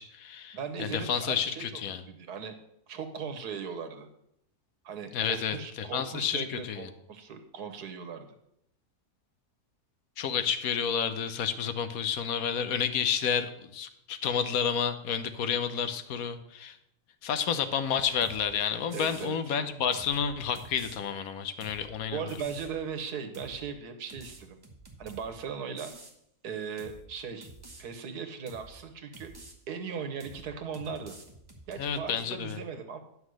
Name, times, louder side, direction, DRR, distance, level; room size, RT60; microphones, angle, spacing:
voice 1, 0.0-2.0 5.1-5.6 5.9-6.8 10.2-16.8 17.2-22.2 31.8-32.6, left 7 dB, 70° left, 10 dB, 1.2 m, -30 dB
voice 2, 0.5-1.8 2.1-2.5 2.9-4.1 4.8-8.3 18.9-19.6 22.1-24.6 25.0-25.9 26.4-27.5 27.8-29.3 29.7-31.2 31.7-33.0, right 6 dB, 85° right, 7 dB, 1.6 m, -38 dB
sound 1, 18.2-18.5 18.9-19.3 19.9-21.0 21.6-21.9 22.3-22.8 23.3-23.6 24.1-25.3 25.8-26.1 26.8-27.0 27.4-27.8 28.5-28.7 29.1-29.5 30.2-30.5 30.7-31.9, right 2 dB, 15° right, 1.1 m, -49 dB
9.5 x 6.2 x 6.3 m, 0.77 s
omnidirectional pair, 1.6 m